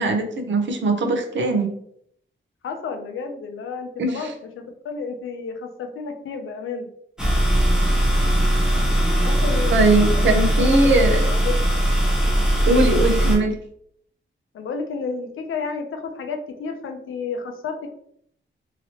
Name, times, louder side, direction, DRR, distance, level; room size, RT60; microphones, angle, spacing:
voice 1, 0.0-1.7 4.0-4.3 9.7-11.2 12.6-13.5, right 2 dB, 65° right, 4 dB, 0.6 m, -20 dB
voice 2, 2.6-6.9 9.2-11.6 14.5-17.9, left 4 dB, 90° left, 5 dB, 0.5 m, -31 dB
sound 1, 7.2-13.4, right 1 dB, 5° right, 0.7 m, -19 dB
2.9 x 2.9 x 2.8 m, 0.68 s
wide cardioid pair, 175°, 20 cm